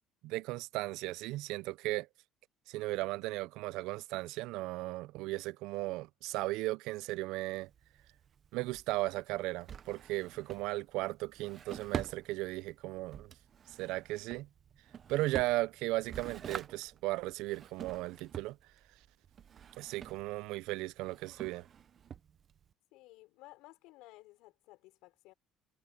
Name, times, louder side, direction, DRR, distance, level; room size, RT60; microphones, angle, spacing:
voice 1, 0.2-2.1 2.7-7.7 8.5-13.3 13.8-14.5 15.1-18.6 19.8-21.7, right 19 dB, 70° right, 0.4 m, -36 dB
Drawer open or close, 7.5-22.7, right 8 dB, 30° right, 0.6 m, -47 dB
voice 2, 22.9-25.3, left 19 dB, 75° left, 4.9 m, -56 dB
cardioid pair, 170°, 0 cm